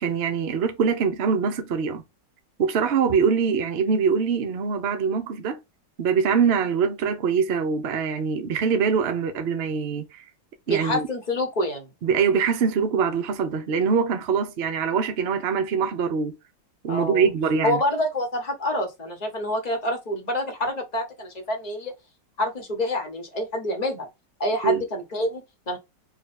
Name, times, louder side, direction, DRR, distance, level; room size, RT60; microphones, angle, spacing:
voice 1, 0.0-2.0 2.6-5.6 6.0-10.2 10.7-11.1 12.0-16.4 16.8-17.8 24.6-24.8, right 6 dB, 65° right, 0.6 m, -23 dB
voice 2, 10.7-11.9 16.9-17.3 17.6-21.9 22.4-24.1 24.4-25.8, left 1 dB, 30° left, 0.9 m, -27 dB
3.8 x 2.3 x 4.1 m
omnidirectional pair, 2.0 m